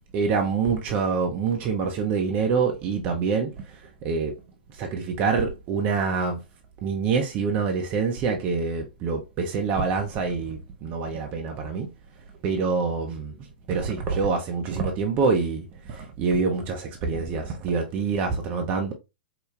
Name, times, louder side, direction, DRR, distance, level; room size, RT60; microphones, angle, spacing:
voice 1, 0.1-4.3 4.8-6.4 6.8-11.9 12.4-18.9, right 5 dB, 35° right, 0.8 m, -26 dB
4.9 x 2.2 x 3.4 m
figure-of-eight pair, 100°, 5 cm